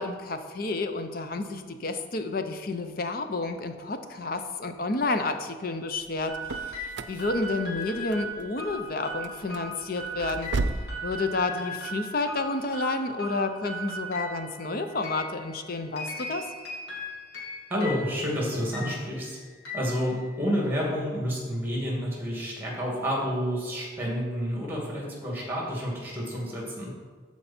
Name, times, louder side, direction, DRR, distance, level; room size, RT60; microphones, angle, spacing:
voice 1, 0.0-6.3 6.6-10.5 11.0-16.4, left 3 dB, 50° left, 7 dB, 0.7 m, -30 dB
sound 1, 6.0-11.0, right 3 dB, 75° right, 0.5 m, -35 dB
sound 2, 6.3-20.7, equal, 75° left, 2.2 m, -39 dB
voice 2, 17.7-19.4 19.7-27.0, equal, 10° right, -3 dB, 2.4 m, -29 dB
13.5 x 4.7 x 4.4 m, 1.5 s
head